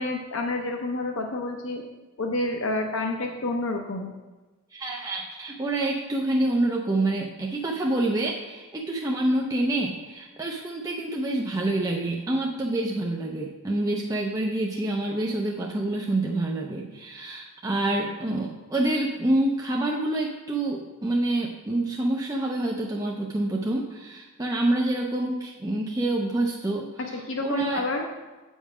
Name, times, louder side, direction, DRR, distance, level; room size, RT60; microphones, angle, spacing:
voice 1, 0.0-1.8 2.2-4.1 27.3-28.0, left 2 dB, 60° left, 2 dB, 0.6 m, -28 dB
voice 2, 4.7-27.8, right 1 dB, 15° right, -1 dB, 0.5 m, -27 dB
8.4 x 5.4 x 4.8 m, 1.2 s
head